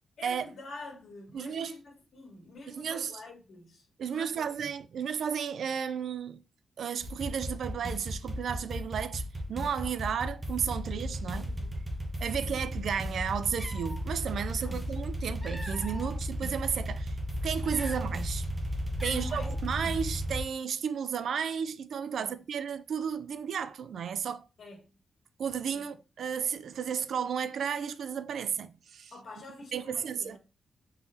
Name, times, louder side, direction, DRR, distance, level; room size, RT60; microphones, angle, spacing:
voice 1, 0.2-1.8 2.1-4.5 11.3-12.0 12.4-12.6 14.6-14.8 19.1-19.6 22.2-22.4 24.6-24.9 25.7-25.8 29.1-30.4, left 2 dB, 70° left, 2.0 m, -47 dB
voice 2, 1.3-1.7 2.7-3.1 4.0-6.4 6.8-11.5 12.2-17.2 17.4-18.5 19.0-24.4 25.4-29.1 29.7-30.4, right 7 dB, 70° right, 0.4 m, -33 dB
sound 1, 7.0-20.4, equal, 20° right, 0.9 m, -34 dB
Cat, 13.6-14.0 15.0-16.2 16.7-16.9 17.5-18.3 18.6-18.7 19.0-19.6, left 1 dB, 5° left, 0.4 m, -44 dB
4.3 x 3.8 x 2.7 m
wide cardioid pair, 145°, 0 cm